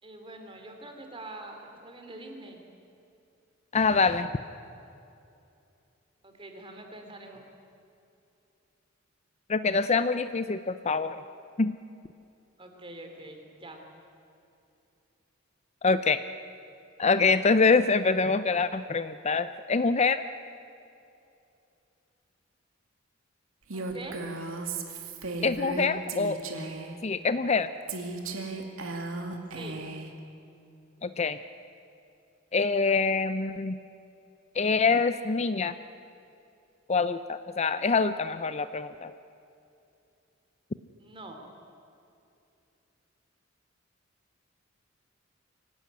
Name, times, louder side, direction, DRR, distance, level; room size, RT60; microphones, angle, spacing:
voice 1, 0.0-2.6 6.2-7.4 12.6-13.8 23.7-24.2 29.5-29.8 41.0-41.4, right 2 dB, 25° right, 3 dB, 3.3 m, -44 dB
voice 2, 3.7-4.3 9.5-11.2 11.6-11.7 15.8-16.2 17.0-20.2 25.4-26.4 27.0-27.7 31.0-31.4 32.5-33.8 34.6-35.7 36.9-39.1, left 4 dB, 35° left, 12 dB, 0.5 m, -25 dB
Female speech woman speaking, 23.7-27.0 27.9-30.1, right 3 dB, 90° right, 2.4 m, -36 dB
24.5 x 17.0 x 9.6 m, 2.7 s
head